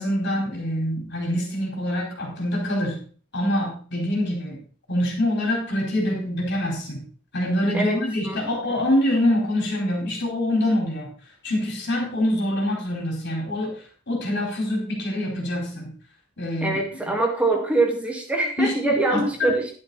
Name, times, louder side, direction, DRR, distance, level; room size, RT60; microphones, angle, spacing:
voice 1, 0.0-3.0 3.3-4.6 4.9-7.0 7.3-11.1 11.4-13.7 14.1-15.9 16.4-16.8 18.6-19.5, left 1 dB, 55° left, -1 dB, 4.4 m, -25 dB
voice 2, 8.2-8.8 16.6-19.7, right 2 dB, 5° right, 0 dB, 2.3 m, -24 dB
10.5 x 8.9 x 4.1 m, 0.42 s
head